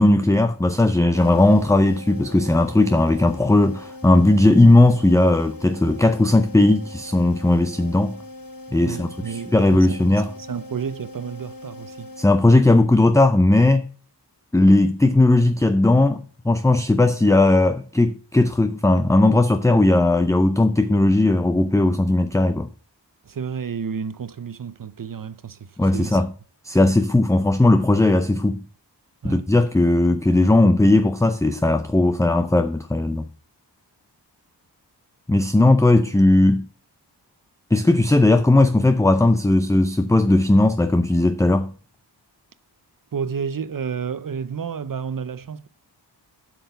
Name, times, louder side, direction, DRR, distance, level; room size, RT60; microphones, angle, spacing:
voice 1, 0.0-8.2 8.7-10.3 12.2-13.9 14.5-22.7 25.8-26.3 26.6-28.6 29.2-33.3 35.3-36.7 37.7-41.7, left 2 dB, 10° left, 0.5 m, -17 dB
sound 1, 1.1-12.9, left 2 dB, 50° left, 1.2 m, -41 dB
voice 2, 8.8-12.1 23.2-26.2 26.8-27.0 29.2-29.5 43.1-45.7, right 6 dB, 50° right, 0.7 m, -31 dB
8.0 x 6.3 x 6.9 m
wide cardioid pair, 95°, 42 cm